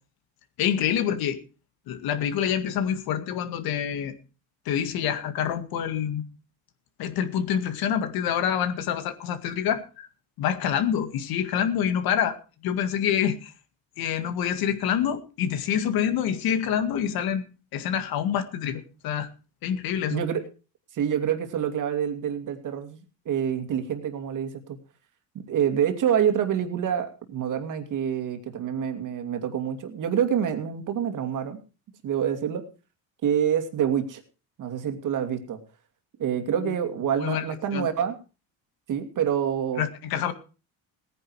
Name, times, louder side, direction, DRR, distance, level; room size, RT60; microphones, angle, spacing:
voice 1, 0.6-1.4 1.9-4.1 4.7-6.2 7.0-10.1 10.4-12.4 12.6-13.5 14.0-17.5 17.7-19.3 19.6-20.2 36.5-36.7 37.2-37.5 37.7-37.9 39.8-40.3, left 9 dB, 65° left, 9 dB, 2.0 m, -26 dB
voice 2, 20.1-20.4 20.9-24.8 25.5-31.6 32.0-32.7 33.2-34.2 34.6-35.6 36.2-38.2 38.9-39.8, right 9 dB, 50° right, 7 dB, 2.5 m, -27 dB
17.5 x 10.0 x 4.6 m, 0.34 s
cardioid pair, 115°, 39 cm